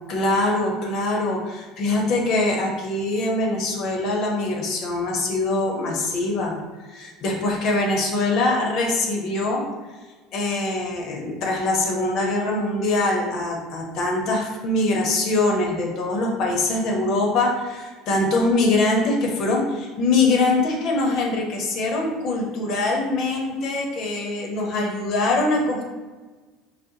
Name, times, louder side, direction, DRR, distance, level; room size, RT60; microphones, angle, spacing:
voice 1, 0.1-6.6 6.8-9.6 10.3-25.9, left 2 dB, 60° left, 0 dB, 0.9 m, -23 dB
5.0 x 2.1 x 2.8 m, 1.3 s
supercardioid pair, 95°, 0 cm